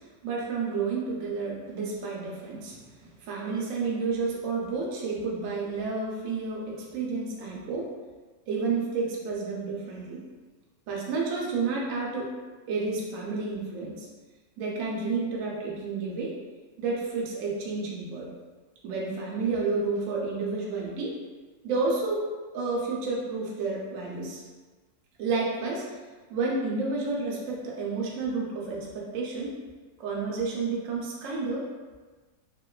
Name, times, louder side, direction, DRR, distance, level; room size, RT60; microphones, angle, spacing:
voice 1, 0.2-7.9 8.5-10.2 10.9-12.3 12.7-14.1 14.6-16.3 16.8-18.3 18.8-21.1 21.6-22.2 22.5-24.4 25.2-25.9 26.3-29.6 30.0-31.7, right 4 dB, 70° right, -3 dB, 0.7 m, -30 dB
3.0 x 2.1 x 2.3 m, 1.3 s
omnidirectional pair, 2.0 m